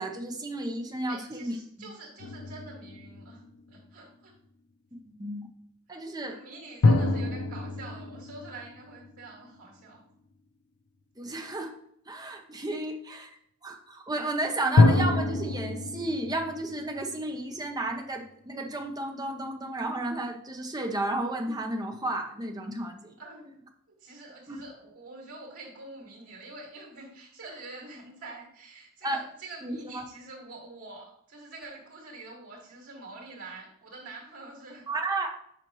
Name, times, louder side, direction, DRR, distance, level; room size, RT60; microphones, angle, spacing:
voice 1, 0.0-1.9 5.0-5.5 5.9-6.4 11.2-11.7 12.1-13.4 13.6-23.1 24.5-24.6 29.0-29.2 29.6-30.0 34.9-35.3, right 2 dB, 20° right, 3 dB, 0.7 m, -33 dB
voice 2, 1.0-4.3 6.2-10.0 12.7-12.9 23.2-23.5 23.9-34.9, right 2 dB, 90° right, -2 dB, 2.5 m, -46 dB
sound 1, 2.2-3.9 6.8-9.5 14.8-17.8, left 2 dB, 80° left, 0.5 m, -26 dB
7.6 x 5.0 x 3.1 m, 0.72 s
head